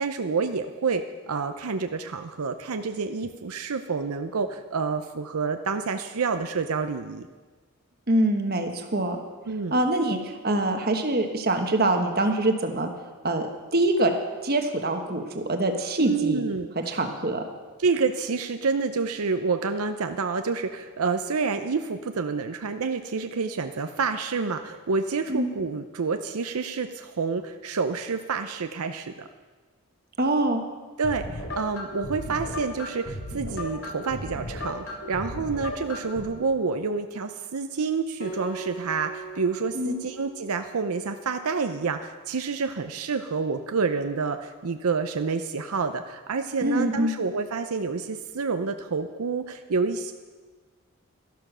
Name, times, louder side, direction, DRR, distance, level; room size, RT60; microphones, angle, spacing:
voice 1, 0.0-7.3 9.5-9.7 16.0-17.0 17.8-29.3 31.0-50.1, right 4 dB, 85° right, 7 dB, 0.6 m, -28 dB
voice 2, 8.1-9.2 9.7-12.9 13.2-13.5 13.7-14.1 14.4-16.4 16.7-17.4 25.3-25.5 30.2-30.6 39.7-40.0 46.6-47.1, right 1 dB, 45° right, 4 dB, 1.3 m, -24 dB
sound 1, 31.0-36.2, left 1 dB, 70° left, 3.0 m, -35 dB
Acoustic guitar, 38.2-41.4, right 4 dB, 45° left, 2.1 m, -41 dB
13.0 x 11.5 x 6.1 m, 1.4 s
head